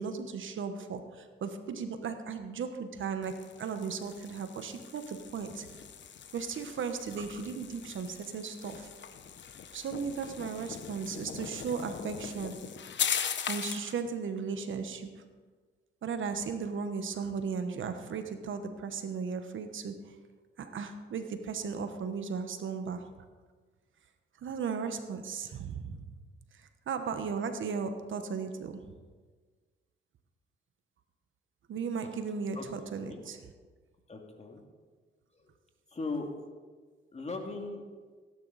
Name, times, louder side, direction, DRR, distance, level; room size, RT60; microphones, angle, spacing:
voice 1, 0.0-5.7 6.3-8.9 9.7-12.6 13.5-15.2 16.0-20.2 20.6-23.1 24.4-26.1 26.5-28.8 31.7-33.4, right 5 dB, 70° right, 8 dB, 1.2 m, -36 dB
sound 1, 3.2-13.9, left 7 dB, 60° left, 1.0 m, -39 dB
voice 2, 34.1-34.6 35.4-35.5 35.9-36.3 37.1-37.8, left 3 dB, 30° left, 2 dB, 2.5 m, -38 dB
17.5 x 10.5 x 4.2 m, 1.4 s
cardioid pair, 80°, 21 cm